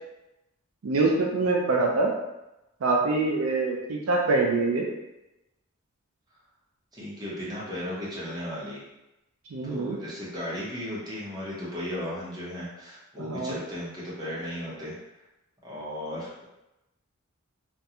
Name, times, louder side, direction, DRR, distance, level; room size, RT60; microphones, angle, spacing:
voice 1, 0.8-2.1 2.8-4.8 9.5-10.0 13.3-13.6, right 3 dB, 80° right, 0 dB, 0.4 m, -24 dB
voice 2, 6.9-8.8 9.6-14.9 15.6-16.5, left 1 dB, 20° right, -7 dB, 0.7 m, -35 dB
2.4 x 2.2 x 2.7 m, 0.96 s
head